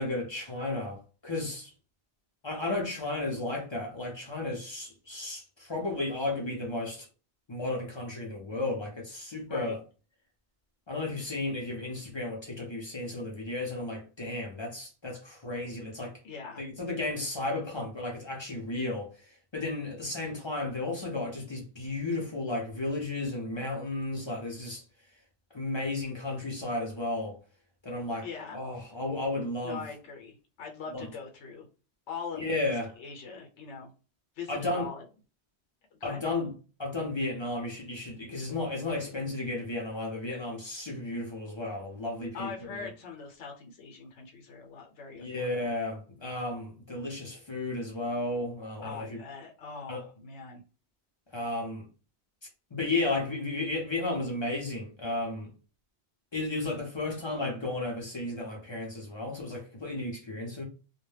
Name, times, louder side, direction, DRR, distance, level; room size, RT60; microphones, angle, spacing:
voice 1, 0.0-1.7 2.4-7.1 7.5-9.8 10.9-16.1 16.6-19.1 19.5-24.8 25.5-27.4 27.8-28.3 28.5-29.8 30.9-31.1 32.4-32.9 34.5-34.9 36.0-36.5 36.8-42.5 45.1-49.2 49.9-50.0 51.3-51.9 52.7-55.5 56.3-60.6, left 2 dB, 35° left, 0.5 m, -33 dB
voice 2, 9.4-9.8 16.2-16.7 28.1-28.6 29.6-31.7 32.1-33.9 34.4-35.0 36.0-36.2 42.3-45.7 48.8-50.6, left 5 dB, 85° left, 0.9 m, -42 dB
2.1 x 2.1 x 3.2 m
omnidirectional pair, 1.2 m